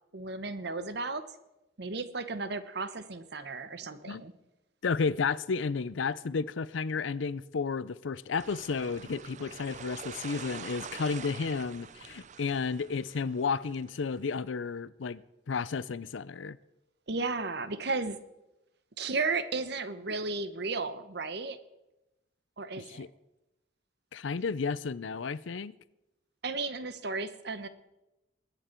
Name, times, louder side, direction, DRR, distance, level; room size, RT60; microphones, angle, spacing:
voice 1, 0.1-1.2 1.8-4.3 17.1-18.2 19.0-21.6 22.6-23.0 26.4-27.7, right 3 dB, 60° right, 0.9 m, -34 dB
voice 2, 4.8-15.2 15.5-16.6 22.8-23.1 24.1-25.7, left 5 dB, 85° left, 0.5 m, -32 dB
sound 1, 8.4-14.1, right 6 dB, 40° right, 0.4 m, -46 dB
21.0 x 9.0 x 4.5 m
head